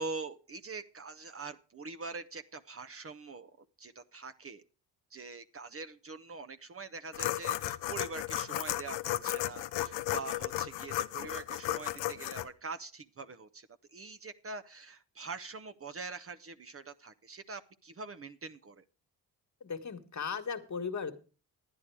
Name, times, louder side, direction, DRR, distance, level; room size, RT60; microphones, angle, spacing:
voice 1, 0.0-3.5 3.8-4.6 5.1-18.8, right 4 dB, 30° right, 10 dB, 0.8 m, -44 dB
sound 1, 7.1-12.4, left 15 dB, 80° left, 0.7 m, -34 dB
voice 2, 19.6-21.2, left 5 dB, 40° left, 7 dB, 1.6 m, -37 dB
11.0 x 9.7 x 4.7 m, 0.35 s
supercardioid pair, 50°, 43 cm